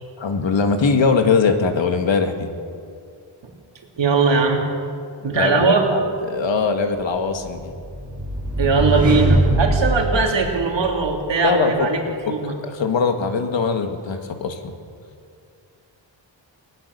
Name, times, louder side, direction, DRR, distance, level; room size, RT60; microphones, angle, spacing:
voice 1, 0.2-2.5 5.3-7.7 11.4-12.3 12.6-14.7, left 5 dB, 75° left, 6 dB, 1.9 m, -21 dB
voice 2, 4.0-4.6 5.2-5.9 8.6-12.0 12.3-12.6, right 4 dB, 70° right, 1 dB, 3.1 m, -20 dB
sound 1, 7.4-11.1, right 1 dB, 10° right, 7.1 m, -22 dB
19.5 x 19.5 x 6.7 m, 2.3 s
wide cardioid pair, 165°, 46 cm